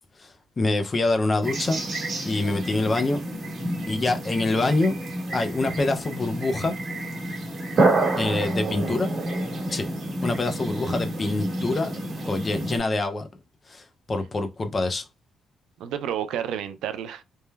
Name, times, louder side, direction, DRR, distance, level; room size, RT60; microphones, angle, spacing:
voice 1, 0.2-1.8 2.3-3.2 3.9-5.0 5.3-6.7 8.2-9.1 9.7-9.9 10.2-11.9 12.2-13.3 13.7-15.1, left 2 dB, 20° left, 0.3 m, -25 dB
sound 1, 1.4-12.8, right 2 dB, 40° right, 1.2 m, -29 dB
voice 2, 8.5-9.0 10.8-11.0 15.8-17.2, right 9 dB, 80° right, 0.3 m, -31 dB
3.1 x 2.1 x 2.2 m
cardioid pair, 170°, 0 cm